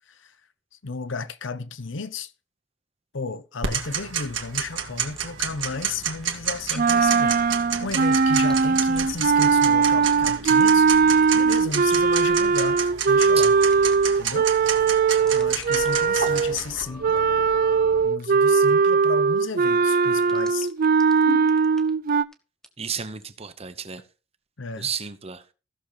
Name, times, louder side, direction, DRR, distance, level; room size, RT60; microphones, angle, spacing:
voice 1, 0.8-2.3 3.1-11.0 11.3-13.5 14.2-14.5 15.3-17.3 18.0-20.7 21.1-21.5 24.6-24.9, left 4 dB, 80° left, 0.9 m, -33 dB
Tick-tock, 3.6-16.8, right 7 dB, 70° right, 1.9 m, -31 dB
sound 1, 5.1-5.9 6.2-7.1 7.4-7.5 7.8-10.1 10.4-10.8 11.2-12.5 13.7-14.3 15.3-18.0 20.2-22.3 22.6-23.2, left 1 dB, 5° left, 1.2 m, -44 dB
sound 2, 6.8-16.6 17.0-22.2, right 5 dB, 45° right, 0.4 m, -20 dB
voice 2, 16.2-16.6 22.8-24.0 24.8-25.4, right 7 dB, 30° right, 0.9 m, -33 dB
15.5 x 6.5 x 4.0 m
head